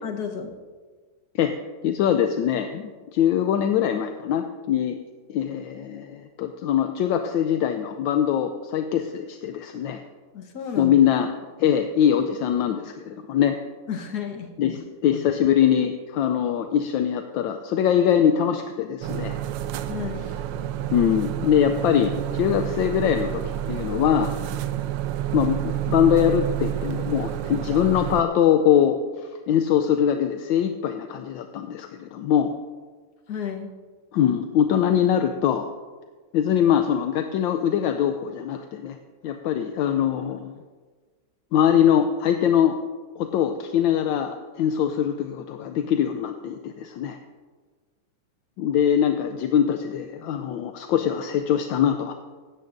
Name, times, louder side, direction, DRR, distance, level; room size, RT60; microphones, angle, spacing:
voice 1, 0.0-0.5 10.3-11.0 13.9-14.8 19.9-20.3 33.3-33.7, left 7 dB, 55° left, 3 dB, 1.6 m, -32 dB
voice 2, 1.8-5.0 5.3-10.0 10.8-11.3 11.6-13.6 14.6-19.4 20.9-23.4 23.7-24.3 25.3-29.0 29.5-32.5 34.1-35.7 36.3-39.0 39.2-40.6 41.5-42.8 43.2-47.2 48.6-52.1, left 9 dB, 75° left, 7 dB, 1.2 m, -22 dB
sound 1, 19.0-28.2, right 12 dB, 75° right, 1.1 m, -29 dB
17.0 x 13.0 x 2.6 m, 1.4 s
omnidirectional pair, 2.3 m